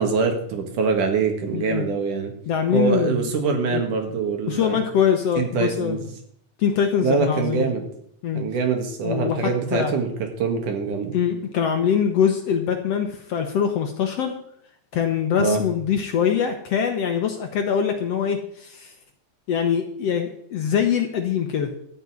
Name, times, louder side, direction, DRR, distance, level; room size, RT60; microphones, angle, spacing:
voice 1, 0.0-2.3 2.7-4.8 5.4-6.1 7.0-7.8 8.3-10.1 10.4-11.1 15.4-15.6, right 5 dB, 70° right, 4 dB, 3.2 m, -24 dB
voice 2, 1.5-1.8 2.5-3.3 3.7-3.8 4.5-6.0 6.6-7.6 8.2-8.4 9.0-9.4 9.7-9.9 11.1-14.3 14.9-18.9 19.5-21.7, left 7 dB, 65° left, 5 dB, 1.7 m, -23 dB
13.5 x 5.4 x 9.4 m, 0.69 s
omnidirectional pair, 3.8 m